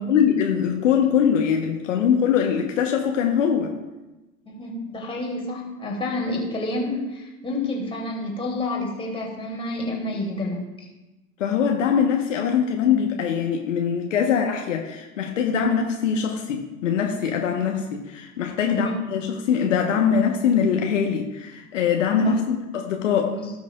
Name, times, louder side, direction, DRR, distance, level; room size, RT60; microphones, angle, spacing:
voice 1, 0.1-3.7 11.4-23.4, left 7 dB, 60° left, 2 dB, 1.2 m, -22 dB
voice 2, 4.5-10.7 18.7-19.0 22.2-22.4 23.3-23.5, left 1 dB, 15° left, -2 dB, 2.7 m, -29 dB
18.0 x 6.2 x 2.4 m, 1.1 s
figure-of-eight pair, 80°, 42 cm